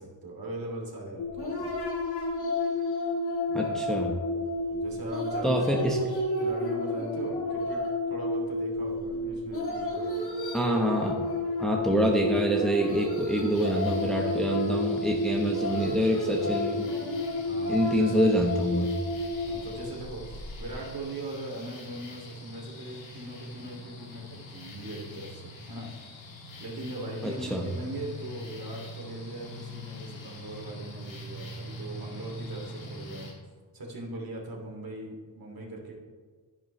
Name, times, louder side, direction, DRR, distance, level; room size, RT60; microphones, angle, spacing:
voice 1, 0.0-1.7 3.5-3.7 4.7-10.3 17.5-18.4 19.5-25.9 26.6-33.3 33.7-35.9, right 1 dB, 55° right, -1 dB, 2.8 m, -40 dB
sound 1, 1.2-20.7, left 2 dB, 60° left, 2.9 m, -31 dB
voice 2, 3.5-4.1 5.4-6.0 10.5-11.2 11.6-16.9 17.7-18.9 27.2-27.6, equal, ahead, 0 dB, 1.2 m, -26 dB
sound 2, 13.5-33.3, left 1 dB, 85° left, 2.2 m, -44 dB
10.5 x 10.5 x 3.3 m, 1.5 s
cardioid pair, 90°, 44 cm